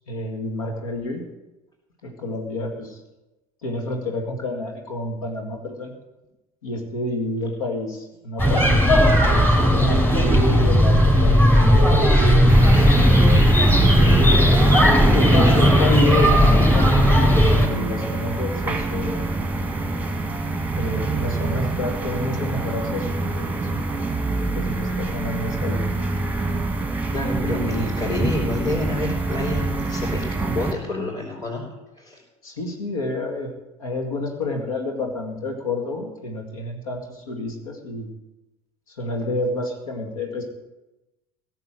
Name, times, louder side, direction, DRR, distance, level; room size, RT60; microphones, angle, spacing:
voice 1, 0.1-1.2 2.0-3.0 3.6-5.9 6.6-8.8 9.3-13.1 14.6-19.4 20.7-23.1 23.4-23.8 24.4-25.8 27.4-28.0 32.4-33.5 33.8-38.1 38.9-40.4, left 2 dB, 70° left, 3 dB, 2.1 m, -29 dB
sound 1, 8.4-17.7, equal, 10° left, 3.8 m, -16 dB
sound 2, 12.5-30.7, right 2 dB, 10° right, 1.5 m, -25 dB
voice 2, 27.1-31.6 32.0-32.2, left 2 dB, 25° left, -5 dB, 4.4 m, -28 dB
16.5 x 7.0 x 7.5 m, 1.0 s
figure-of-eight pair, 65°, 18 cm